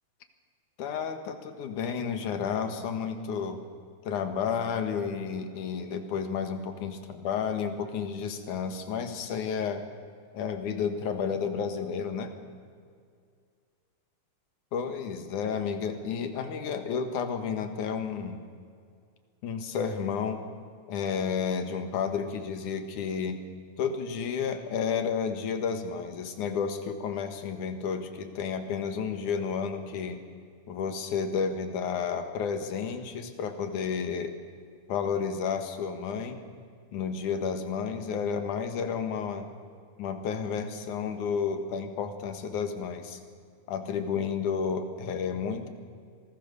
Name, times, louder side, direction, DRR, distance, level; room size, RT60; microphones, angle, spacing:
voice 1, 0.8-3.6 4.0-9.8 10.3-12.3 14.7-18.4 19.4-20.4 20.9-23.4 23.8-30.2 30.7-34.3 34.9-36.4 36.9-39.5 40.0-43.2 43.7-45.7, left 6 dB, 85° left, 7 dB, 3.1 m, -31 dB
26.0 x 19.0 x 6.9 m, 2.2 s
omnidirectional pair, 3.5 m